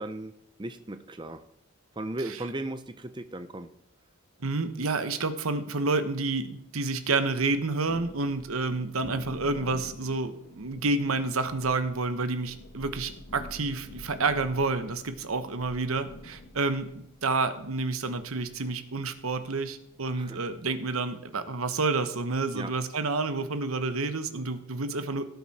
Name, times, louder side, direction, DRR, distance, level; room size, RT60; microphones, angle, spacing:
voice 1, 0.0-1.4 2.0-3.7 20.2-20.4 22.5-22.7, right 1 dB, 20° right, 9 dB, 0.6 m, -36 dB
voice 2, 4.4-16.9 17.2-25.2, right 3 dB, 85° right, 10 dB, 1.1 m, -29 dB
Thunder, 7.7-20.6, left 1 dB, 75° left, 1.7 m, -48 dB
17.0 x 8.0 x 4.2 m, 0.75 s
head